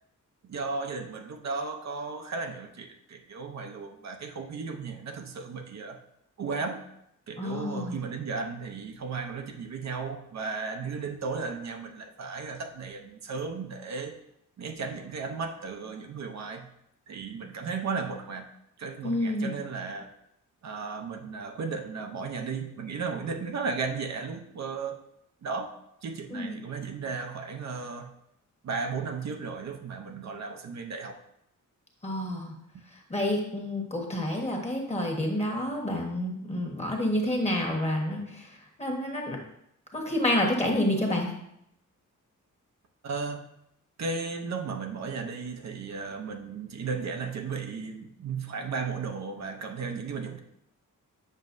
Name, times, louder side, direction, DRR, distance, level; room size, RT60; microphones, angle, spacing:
voice 1, 0.4-6.0 6.4-6.8 7.3-14.1 14.6-16.7 17.1-18.5 18.8-20.1 20.6-25.0 25.4-25.8 26.0-28.1 28.6-31.2 43.0-43.4 44.0-50.4, right 4 dB, 55° right, 3 dB, 0.7 m, -35 dB
voice 2, 7.4-8.0 19.0-19.6 26.3-26.5 32.0-32.5 33.1-39.4 39.9-41.3, left 1 dB, 20° left, 1 dB, 1.3 m, -29 dB
7.6 x 6.0 x 2.6 m, 0.77 s
wide cardioid pair, 135°, 32 cm